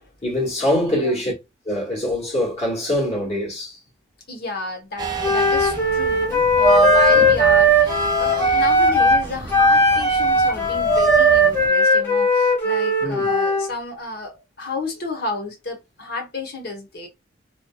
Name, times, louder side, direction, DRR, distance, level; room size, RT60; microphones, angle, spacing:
voice 1, 0.2-1.3 1.7-3.8 13.0-13.3, left 1 dB, 35° left, 1.6 m, -23 dB
voice 2, 0.8-1.2 4.3-17.1, left 3 dB, 55° left, 1.0 m, -31 dB
sound 1, 5.0-11.7, right 3 dB, 20° right, 0.4 m, -24 dB
Wind instrument woodwind instrument, 5.2-9.2 9.5-13.7, equal, 10° left, 0.8 m, -18 dB
3.1 x 2.9 x 2.2 m
head